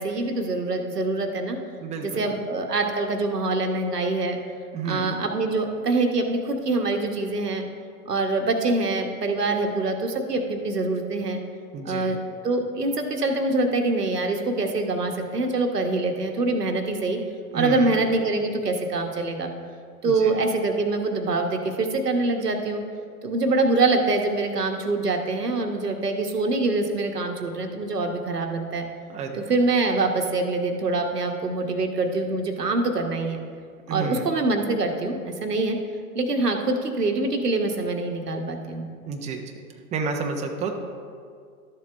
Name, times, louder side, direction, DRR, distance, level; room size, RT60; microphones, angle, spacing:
voice 1, 0.0-1.6 2.0-4.4 4.8-7.6 8.1-11.4 11.8-12.2 12.4-17.2 17.5-19.5 20.0-22.8 23.2-28.9 29.4-33.4 33.9-35.8 36.1-38.9, right 2 dB, 85° right, 4 dB, 1.2 m, -25 dB
voice 2, 1.8-2.4 4.7-5.1 11.7-12.2 17.5-17.9 20.0-20.3 29.1-29.5 33.9-34.3 39.1-39.4 39.9-40.8, right 5 dB, 15° right, 2 dB, 0.8 m, -30 dB
12.5 x 7.0 x 3.4 m, 2.1 s
figure-of-eight pair, 105°, 46 cm